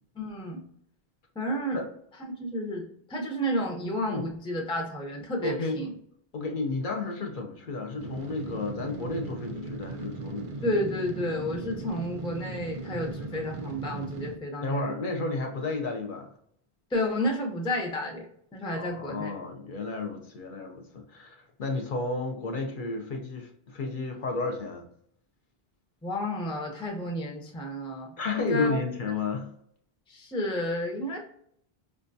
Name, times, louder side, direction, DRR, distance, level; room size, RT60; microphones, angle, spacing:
voice 1, 0.2-0.6 1.4-1.8 2.2-5.9 10.6-15.0 16.9-18.3 18.5-19.3 26.0-28.8 30.1-31.2, left 1 dB, 5° left, 0 dB, 0.4 m, -31 dB
voice 2, 5.4-5.8 6.3-10.8 14.6-16.3 18.7-24.9 28.2-29.5, left 3 dB, 60° left, 2 dB, 0.7 m, -32 dB
sound 1, 8.0-14.4, right 3 dB, 50° right, 0.4 m, -38 dB
4.9 x 2.3 x 2.6 m, 0.69 s
omnidirectional pair, 1.0 m